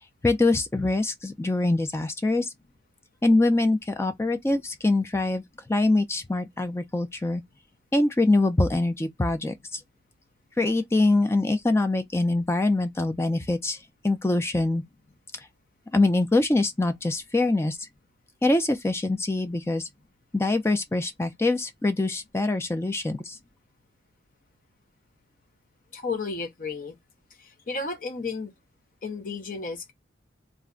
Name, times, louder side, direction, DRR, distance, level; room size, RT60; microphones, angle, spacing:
voice 1, 0.2-2.5 3.2-5.4 5.7-7.4 7.9-9.8 10.6-13.8 14.0-14.8 15.9-17.8 18.4-19.8 20.3-23.3, left 2 dB, 15° left, 0.3 m, -24 dB
voice 2, 25.9-27.0 27.7-28.5 29.0-29.9, left 4 dB, 50° left, 0.7 m, -32 dB
2.4 x 2.1 x 3.6 m
head